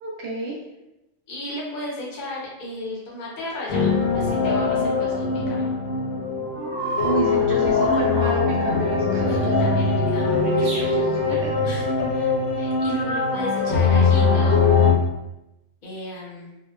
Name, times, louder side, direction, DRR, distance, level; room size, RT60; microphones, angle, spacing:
voice 1, 0.0-0.6 7.0-9.5 11.3-11.5, right 3 dB, 65° right, -3 dB, 0.8 m, -29 dB
voice 2, 1.3-5.7 9.2-14.6 15.8-16.5, left 1 dB, 45° left, -6 dB, 0.7 m, -35 dB
sound 1, 3.7-14.9, left 4 dB, 65° left, 1.1 m, -21 dB
sound 2, 6.5-8.6 10.6-10.9, right 2 dB, 85° right, 1.1 m, -31 dB
2.8 x 2.1 x 2.2 m, 0.94 s
omnidirectional pair, 1.4 m